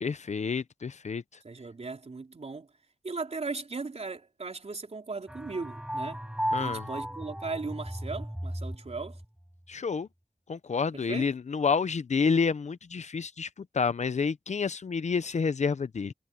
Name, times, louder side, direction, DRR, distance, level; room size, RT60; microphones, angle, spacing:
voice 1, 0.0-1.2 6.5-6.9 9.7-10.1 10.5-16.1, left 5 dB, 80° left, 0.7 m, -29 dB
voice 2, 1.4-2.7 3.0-6.2 6.6-9.2 10.9-11.3, right 4 dB, 65° right, 4.1 m, -37 dB
sound 1, 5.3-9.3, equal, 5° right, 4.7 m, -35 dB
wide cardioid pair, 70°, 12 cm